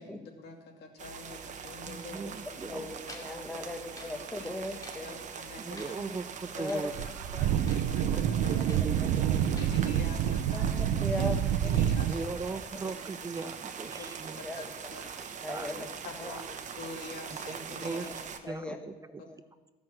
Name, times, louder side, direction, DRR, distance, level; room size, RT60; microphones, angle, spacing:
voice 1, 0.0-2.4 2.6-2.8 4.4-4.5 5.0-5.8 6.6-6.8 7.4-8.6 9.3-10.7 11.2-11.3 11.6-12.3 12.8-12.9 13.4-13.5 13.8-14.0 14.3-14.6 14.9-15.1 16.0-16.4 16.8-18.1, left 3 dB, 75° left, 2 dB, 2.4 m, -46 dB
sound 1, 1.0-18.4, right 6 dB, 45° right, 1.1 m, -43 dB
voice 2, 1.8-2.9 3.4-3.5 5.6-7.1 7.4-7.6 8.1-9.6 12.0-14.4 15.5-15.7 16.2-16.4 17.3-18.1 18.5-19.2, right 4 dB, 20° right, 12 dB, 0.5 m, -39 dB
voice 3, 2.4-5.2 5.9-6.0 6.6-6.9 8.3-8.5 9.0-9.4 10.5-11.8 14.4-15.9 16.2-16.3 17.9-18.1 18.4-18.8 19.2-19.4, left 2 dB, 5° left, 4 dB, 1.5 m, -39 dB
sound 2, 3.0-4.2 4.6-5.1 5.5-6.0 6.5-6.9 7.5-7.9 8.2-8.9 9.3-9.8, left 2 dB, 20° left, 2.5 m, -51 dB
sound 3, 6.6-6.7 6.9-12.1, right 10 dB, 90° right, 0.7 m, -28 dB
15.5 x 6.1 x 7.6 m, 1.2 s
cardioid pair, 110°, 17 cm